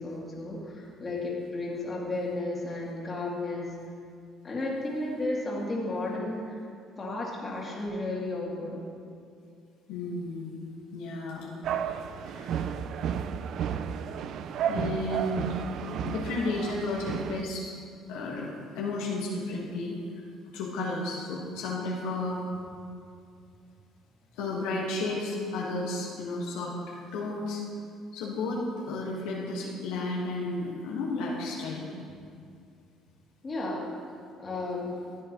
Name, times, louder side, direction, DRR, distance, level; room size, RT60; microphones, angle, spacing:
voice 1, 0.0-3.7 4.4-6.6 7.0-8.9 33.4-33.9 34.4-35.0, left 2 dB, 30° left, -4 dB, 2.2 m, -33 dB
voice 2, 9.9-10.7 10.9-11.5 12.3-12.5 14.7-15.7 16.0-17.7 18.1-20.0 20.5-22.4 24.3-27.6 28.1-31.8, left 2 dB, 90° left, -3 dB, 1.5 m, -33 dB
sound 1, 11.6-17.4, right 8 dB, 65° right, 0.4 m, -32 dB
14.0 x 7.9 x 3.1 m, 2.3 s
cardioid pair, 90°, 0 cm